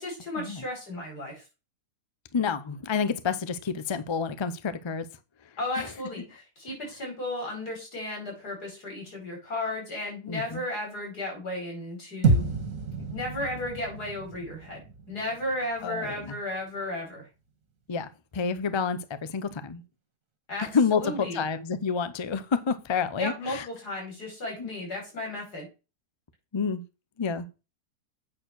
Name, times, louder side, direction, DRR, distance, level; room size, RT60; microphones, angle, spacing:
voice 1, 0.0-1.4 5.6-12.5 13.1-17.2 20.5-21.4 23.2-25.7, left 1 dB, 75° left, 5.7 m, -34 dB
voice 2, 2.3-5.0 5.8-5.9 10.3-10.6 15.8-16.2 17.9-19.8 20.6-23.7 24.6-24.7 26.5-26.8 27.2-27.5, left 5 dB, 45° left, 0.3 m, -29 dB
sound 1, 12.2-16.6, right 4 dB, 55° right, 2.2 m, -29 dB
8.7 x 4.5 x 6.4 m
omnidirectional pair, 1.7 m